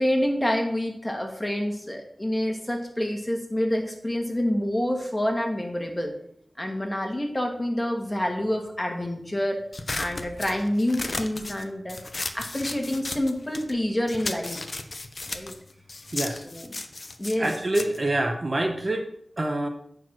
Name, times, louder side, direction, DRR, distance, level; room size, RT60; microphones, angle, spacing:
voice 1, 0.0-6.2 6.6-9.6 10.0-12.0 12.3-14.6 15.3-15.5 16.5-16.7 17.2-17.5, left 1 dB, 15° left, 2 dB, 1.8 m, -27 dB
sound 1, 9.7-13.8 14.1-18.9, left 2 dB, 50° left, 0.8 m, -35 dB
voice 2, 17.4-19.1 19.4-19.7, right 1 dB, 40° right, 4 dB, 1.0 m, -26 dB
8.3 x 4.7 x 6.1 m, 0.67 s
wide cardioid pair, 70°, 0 cm